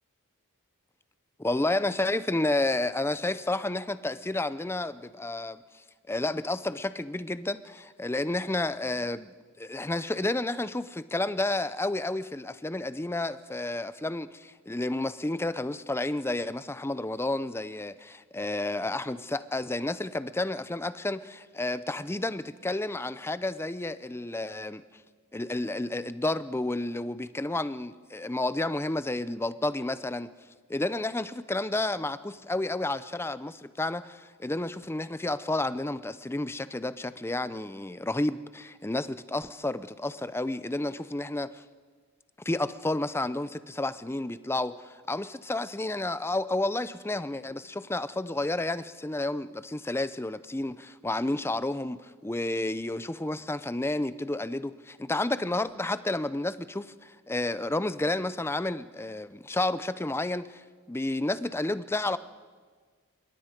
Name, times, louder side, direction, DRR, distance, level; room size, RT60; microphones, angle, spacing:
voice 1, 1.4-5.6 6.1-24.8 25.3-30.3 30.7-41.6 42.4-60.6 60.9-62.2, left 2 dB, 10° left, 14 dB, 0.5 m, -31 dB
26.5 x 22.0 x 5.2 m, 1.5 s
head